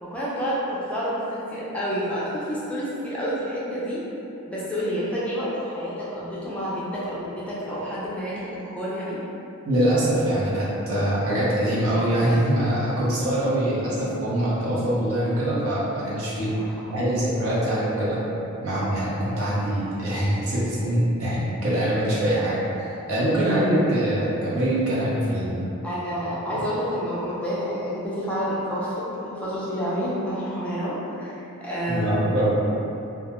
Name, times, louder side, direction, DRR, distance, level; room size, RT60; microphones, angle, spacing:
voice 1, 0.0-4.0 4.5-9.2 16.5-17.1 21.9-22.1 25.8-32.3, equal, 5° left, -9 dB, 0.3 m, -29 dB
voice 2, 9.7-16.5 16.9-18.2 18.6-25.7 26.5-26.6 31.9-32.6, right 1 dB, 80° right, -8 dB, 0.7 m, -23 dB
2.3 x 2.0 x 2.9 m, 2.9 s
head